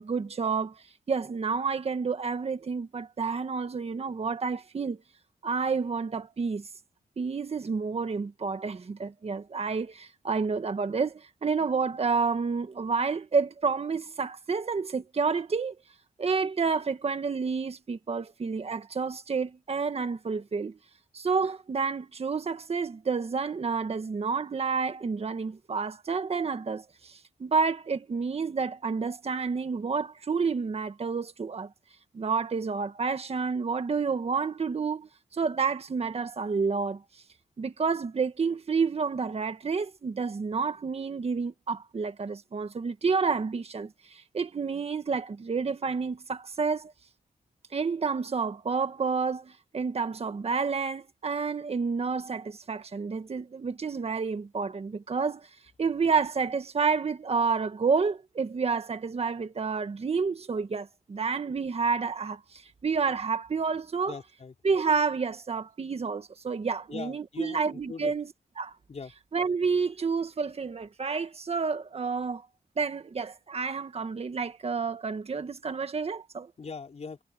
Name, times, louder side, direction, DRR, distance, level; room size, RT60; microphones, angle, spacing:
voice 1, 0.0-5.0 5.4-6.7 7.2-15.8 16.2-20.8 21.1-31.7 32.1-37.0 37.6-46.9 47.7-55.5 55.8-64.2 64.6-68.7 69.3-72.5 72.8-76.5, right 5 dB, 40° right, 1.6 m, -29 dB
voice 2, 64.1-64.5 66.9-67.6 67.9-68.1 68.9-69.1 76.6-77.2, left 5 dB, 45° left, 4.8 m, -40 dB
wide cardioid pair, 145°, 16 cm